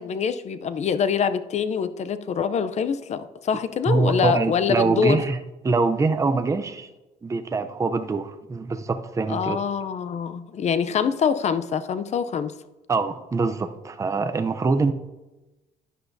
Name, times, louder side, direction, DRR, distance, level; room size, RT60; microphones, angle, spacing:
voice 1, 0.0-5.2 9.3-12.5, left 7 dB, 40° left, 12 dB, 0.5 m, -25 dB
voice 2, 3.9-5.4 5.6-6.9 7.2-9.6 12.9-14.9, right 4 dB, 20° right, 8 dB, 0.6 m, -24 dB
10.5 x 10.0 x 2.7 m, 1.1 s
cardioid pair, 110°, 17 cm